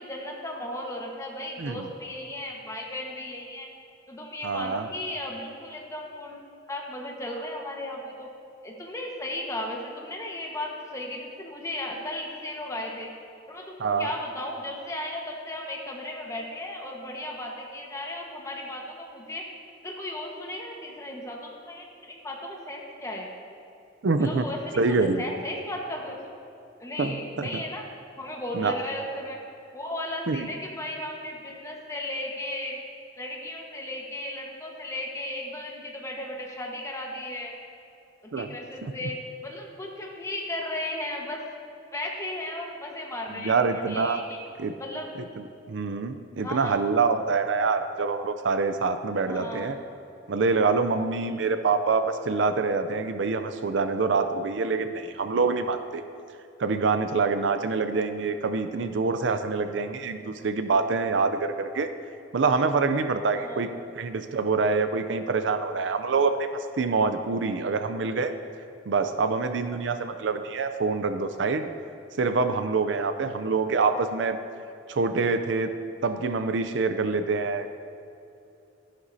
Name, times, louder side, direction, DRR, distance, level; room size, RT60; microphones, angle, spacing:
voice 1, 0.0-3.7 4.1-6.4 6.7-8.3 8.6-13.1 13.5-19.4 19.8-23.3 24.2-26.2 26.8-27.9 28.2-29.4 29.7-32.8 33.2-37.5 38.2-39.1 39.4-41.4 41.9-44.4 44.8-45.1 46.4-46.8 49.2-49.7 63.3-63.7, left 1 dB, 15° left, -1 dB, 1.3 m, -35 dB
voice 2, 4.4-4.9 13.8-14.1 24.0-24.4 24.8-25.2 27.0-27.6 28.5-28.7 30.3-30.5 38.3-38.6 38.8-38.9 43.3-44.2 44.6-44.7 45.7-49.8 50.3-56.0 56.6-61.9 62.3-63.7 64.0-66.5 66.8-68.3 68.9-71.7 72.2-74.4 74.9-75.7 76.0-77.7, right 4 dB, 70° right, 9 dB, 0.5 m, -25 dB
13.0 x 11.0 x 2.7 m, 2.7 s
head